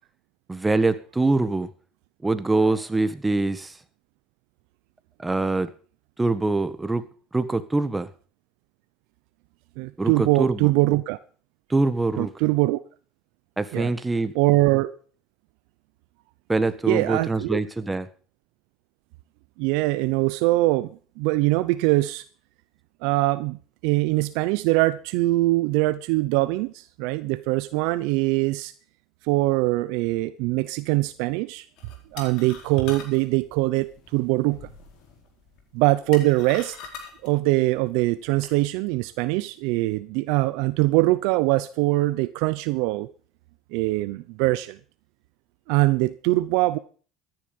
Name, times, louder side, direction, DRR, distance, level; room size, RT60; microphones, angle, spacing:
voice 1, 0.5-1.7 2.2-3.7 5.2-5.7 6.2-7.0 7.3-8.1 10.0-10.7 11.7-12.3 13.6-14.3 16.5-18.1, right 2 dB, 15° right, 1.4 m, -24 dB
voice 2, 9.8-11.2 12.2-12.8 13.7-13.9 14.3-14.9 16.9-17.6 19.6-22.2 23.0-28.7 29.3-31.7 32.1-34.7 35.7-36.8 37.2-43.1 43.7-44.8 45.7-46.8, right 20 dB, 75° right, 0.7 m, -23 dB
sound 1, 31.8-38.5, left 6 dB, 65° left, 4.5 m, -44 dB
14.0 x 11.0 x 5.3 m
supercardioid pair, 95°, 0 cm